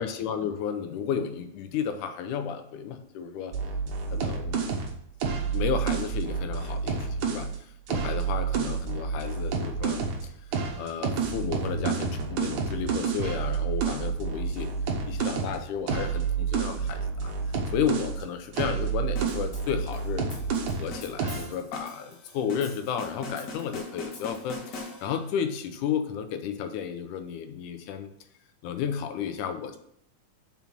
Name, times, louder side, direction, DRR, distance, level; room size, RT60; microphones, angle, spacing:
voice 1, 0.0-3.5 4.1-4.9 5.3-10.3 10.8-14.7 15.1-20.3 20.6-28.1 28.6-29.8, left 8 dB, 85° left, 7 dB, 2.3 m, -33 dB
sound 1, 3.5-7.5 7.9-10.2 10.5-18.2 18.5-20.9 21.2-21.5, right 6 dB, 85° right, 2.7 m, -29 dB
sound 2, 19.2-25.4, left 3 dB, 50° left, 1.4 m, -42 dB
5.8 x 5.5 x 6.0 m, 0.72 s
omnidirectional pair, 3.5 m